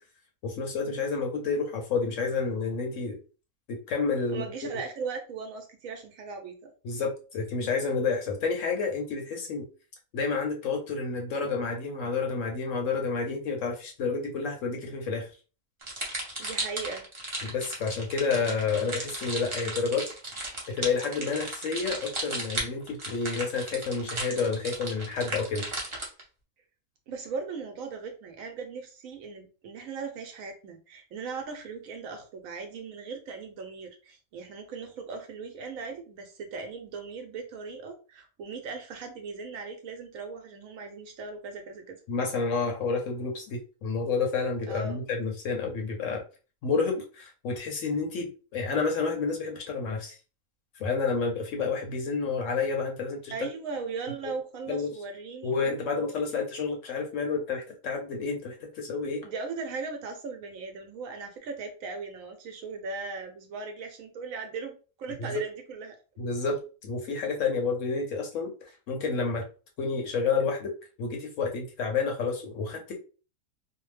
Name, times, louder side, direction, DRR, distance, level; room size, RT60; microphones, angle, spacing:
voice 1, 0.4-3.2 3.7-4.4 6.8-9.7 10.1-15.3 17.4-20.0 20.7-25.6 42.1-46.2 46.6-50.2 50.8-53.3 54.2-54.3 54.7-54.9 55.4-59.2 65.2-65.4 66.2-68.5 68.9-69.4 69.8-70.7 71.0-73.0, left 4 dB, 65° left, 2 dB, 0.9 m, -29 dB
voice 2, 4.3-6.7 16.4-17.1 18.3-18.4 27.1-42.0 44.7-45.0 53.3-55.8 59.2-66.0, right 4 dB, 70° right, 4 dB, 1.0 m, -38 dB
sound 1, 15.8-26.2, right 2 dB, 30° right, 0.5 m, -35 dB
2.6 x 2.1 x 3.2 m, 0.35 s
omnidirectional pair, 1.6 m